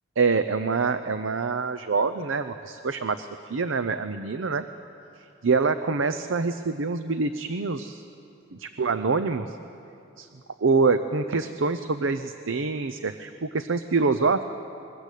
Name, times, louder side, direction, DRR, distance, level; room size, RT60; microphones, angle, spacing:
voice 1, 0.2-4.7 5.4-8.0 8.5-9.6 10.2-10.3 10.6-14.5, right 4 dB, 85° right, 10 dB, 0.7 m, -25 dB
22.5 x 19.5 x 8.4 m, 2.7 s
head